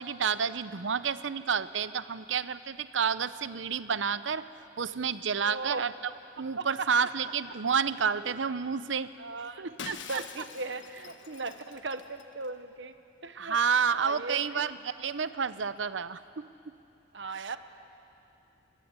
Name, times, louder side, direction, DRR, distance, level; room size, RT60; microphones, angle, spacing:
voice 1, 0.0-4.4 4.8-5.9 6.4-9.1 9.6-10.2 13.4-16.4 17.4-17.5, right 6 dB, 80° right, 14 dB, 0.8 m, -30 dB
voice 2, 5.4-5.9 6.6-6.9 8.3-8.4 9.2-9.6 10.1-12.9 13.2-13.6 13.9-14.7 17.1-17.6, right 3 dB, 65° right, 10 dB, 1.2 m, -38 dB
Shatter, 9.8-12.5, left 6 dB, 75° left, 1.4 m, -45 dB
24.5 x 19.5 x 9.6 m, 2.7 s
head